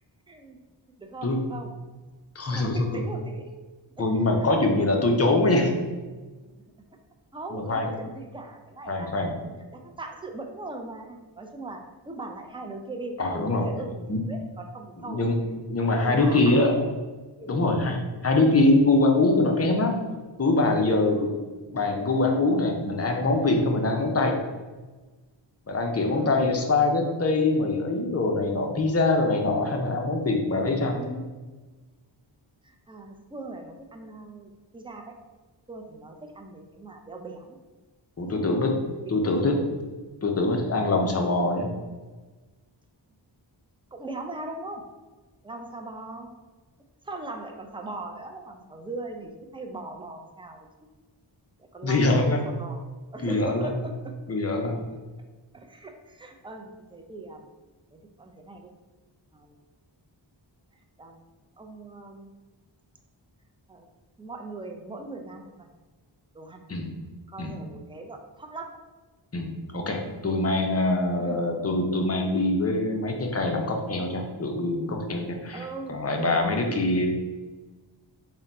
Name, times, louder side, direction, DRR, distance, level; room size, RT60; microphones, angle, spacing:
voice 1, 0.3-0.6 1.0-1.7 2.5-3.6 4.0-4.5 6.4-6.5 7.3-9.1 9.7-15.2 15.8-16.9 17.4-17.8 21.6-21.7 26.1-26.4 30.9-31.3 32.6-35.1 35.7-37.6 38.2-38.7 39.0-39.6 43.9-44.8 45.4-46.3 47.0-50.7 51.6-52.1 52.4-52.8 53.1-54.1 55.5-57.5 57.9-58.7 59.3-59.6 61.0-61.2 61.6-62.3 63.7-63.9 64.2-65.7 66.3-66.6 67.3-68.7 71.2-71.5 75.5-76.7, right 2 dB, 10° right, 3 dB, 0.4 m, -40 dB
voice 2, 2.4-3.0 4.0-5.7 7.5-7.9 8.9-9.3 13.2-13.6 14.1-14.2 15.0-15.4 15.7-16.8 17.5-20.0 20.4-21.3 21.7-24.4 25.7-31.0 38.2-38.7 39.1-39.5 40.2-41.7 51.8-52.4 53.2-53.7 54.3-54.8 66.7-66.9 67.4-67.5 69.3-77.1, left 2 dB, 30° left, 2 dB, 0.6 m, -23 dB
3.7 x 2.2 x 4.0 m, 1.3 s
wide cardioid pair, 60°, 47 cm